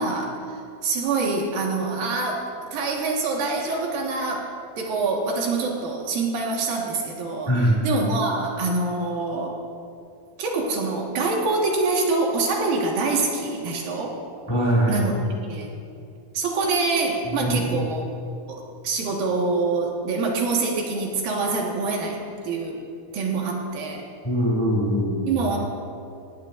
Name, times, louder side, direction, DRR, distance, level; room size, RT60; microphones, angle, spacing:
voice 1, 0.0-2.4 2.7-4.5 4.8-7.5 7.8-9.5 10.4-14.1 14.9-15.7 16.3-18.1 18.5-22.2 22.4-22.8 23.1-24.0 25.3-25.6, right 3 dB, 70° right, -1 dB, 3.3 m, -25 dB
voice 2, 7.5-7.8 14.5-15.1 17.3-17.8 24.2-25.3, equal, 10° left, -3 dB, 1.4 m, -22 dB
18.5 x 18.0 x 2.6 m, 2.5 s
omnidirectional pair, 4.4 m